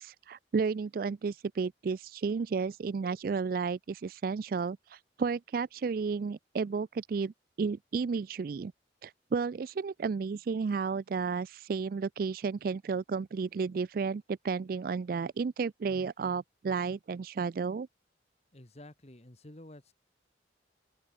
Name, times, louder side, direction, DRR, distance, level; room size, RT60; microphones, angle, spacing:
voice 1, 0.0-7.3 7.6-8.7 9.0-17.9, right 5 dB, 50° right, 0.3 m, -32 dB
voice 2, 18.5-19.9, left 1 dB, 35° left, 1.7 m, -51 dB
head